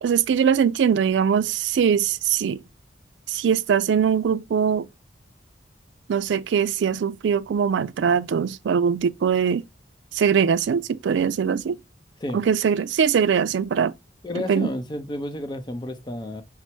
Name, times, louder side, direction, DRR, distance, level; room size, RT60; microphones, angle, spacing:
voice 1, 0.0-2.6 3.3-4.9 6.1-9.6 10.1-11.8 12.3-13.9 14.4-14.7, right 7 dB, 80° right, 0.3 m, -22 dB
voice 2, 14.2-16.4, left 1 dB, 25° left, 0.6 m, -31 dB
5.4 x 2.0 x 4.4 m
head